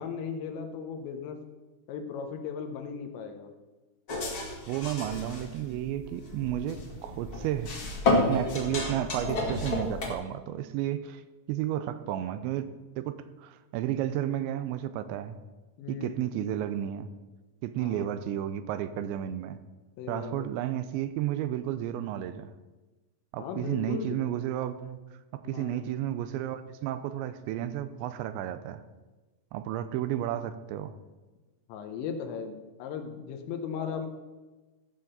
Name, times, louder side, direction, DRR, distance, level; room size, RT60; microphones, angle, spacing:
voice 1, 0.0-1.4 1.9-3.5 8.3-8.7 14.2-14.5 15.8-16.2 17.8-18.1 20.0-20.5 23.4-24.2 25.4-25.9 31.7-34.1, left 6 dB, 85° left, 5 dB, 3.2 m, -37 dB
sound 1, 4.1-10.1, left 2 dB, 45° left, 1.8 m, -31 dB
voice 2, 4.7-7.8 8.1-11.2 11.5-15.4 15.9-17.1 17.6-19.6 20.1-22.5 23.3-25.0 25.3-28.8 29.5-30.9, right 12 dB, 85° right, 12 dB, 2.9 m, -32 dB
14.5 x 5.8 x 6.5 m, 1.2 s
omnidirectional pair, 5.1 m